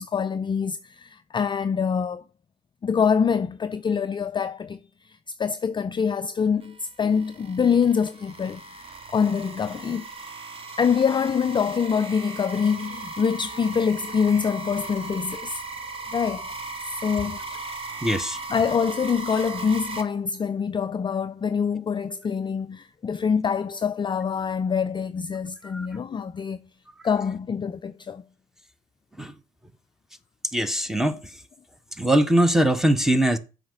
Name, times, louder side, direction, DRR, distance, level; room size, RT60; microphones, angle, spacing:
voice 1, 0.0-2.2 2.8-4.8 5.1-8.6 9.1-10.1 10.8-15.6 16.1-16.5 17.0-17.6 18.5-26.6 27.0-28.2, left 6 dB, 25° left, 0.4 m, -25 dB
sound 1, 6.6-20.0, right 3 dB, 30° right, 1.7 m, -37 dB
voice 2, 18.0-18.4 25.7-25.9 29.2-29.3 30.5-31.2 32.0-33.4, right 1 dB, ahead, 1.1 m, -21 dB
7.8 x 4.9 x 6.6 m
hypercardioid pair, 60°, 20 cm